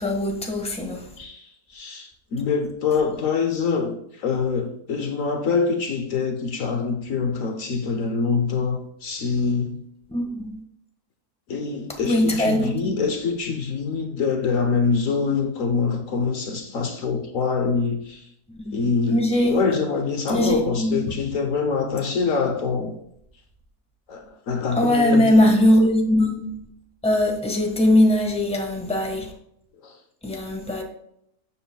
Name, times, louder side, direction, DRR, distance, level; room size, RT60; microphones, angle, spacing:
voice 1, 0.0-1.1 10.1-10.6 12.0-12.9 18.7-19.6 20.3-21.2 24.7-26.5 27.0-29.3 30.2-30.8, left 1 dB, 5° left, 1.3 m, -21 dB
voice 2, 1.2-9.8 11.5-18.3 18.7-22.9 24.1-25.5 29.8-30.0, left 5 dB, 65° left, 1.2 m, -25 dB
12.5 x 7.6 x 2.2 m
omnidirectional pair, 1.6 m